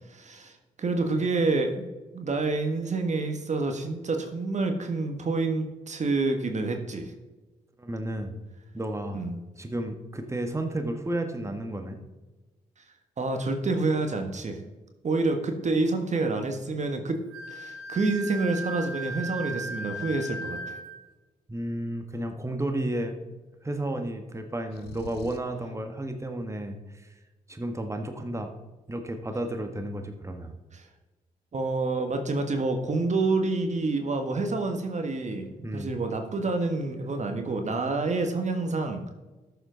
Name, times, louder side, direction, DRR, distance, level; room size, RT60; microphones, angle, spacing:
voice 1, 0.1-1.9 2.1-7.1 9.1-9.4 13.2-14.6 15.0-17.2 17.5-20.8 30.7-30.8 31.5-39.0, right 3 dB, 45° right, 5 dB, 1.5 m, -28 dB
voice 2, 7.8-8.4 8.7-9.2 9.6-12.0 21.5-23.2 23.6-27.1 27.5-28.5 28.9-30.5 35.6-35.9, right 1 dB, 15° right, 5 dB, 1.6 m, -32 dB
Wind instrument woodwind instrument, 17.3-21.0, right 2 dB, 85° right, 1.5 m, -37 dB
sound 1, 24.7-25.6, left 10 dB, 75° left, 0.6 m, -44 dB
12.5 x 7.1 x 3.9 m, 1.2 s
hypercardioid pair, 45°, 17 cm